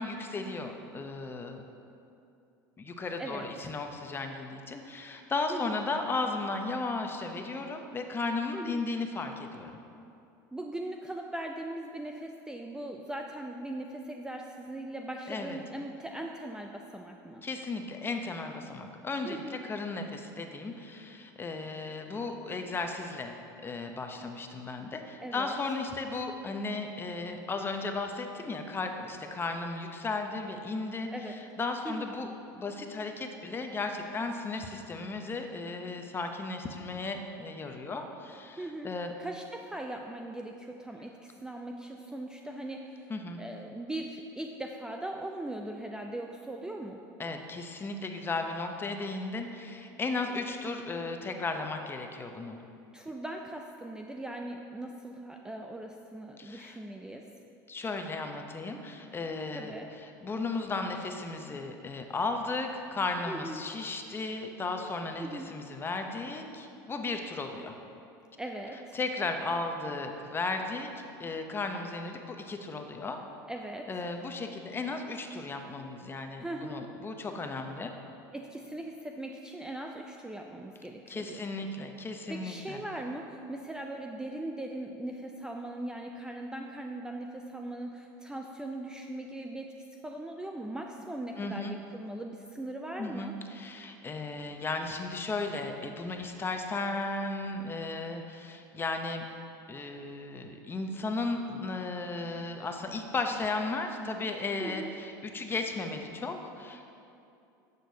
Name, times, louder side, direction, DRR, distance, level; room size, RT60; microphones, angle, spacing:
voice 1, 0.0-1.6 2.8-9.8 15.3-15.6 17.4-23.3 23.6-39.1 43.1-43.4 47.2-52.6 56.4-56.8 57.7-67.7 68.9-73.2 73.9-77.9 81.1-82.8 91.4-91.7 93.0-99.2 99.7-106.9, left 3 dB, 20° left, 5 dB, 0.7 m, -35 dB
voice 2, 8.5-8.9 10.5-17.4 19.3-19.6 25.2-25.6 31.1-31.3 31.8-32.1 38.6-38.9 39.2-43.1 43.4-47.0 52.9-57.3 59.5-59.9 63.3-63.7 65.2-65.5 68.4-69.0 73.5-73.9 76.4-76.8 78.3-81.4 82.3-89.7 90.0-93.3 104.6-104.9, right 1 dB, 5° right, 2 dB, 0.4 m, -39 dB
10.0 x 6.7 x 2.8 m, 2.6 s
supercardioid pair, 100°, 10 cm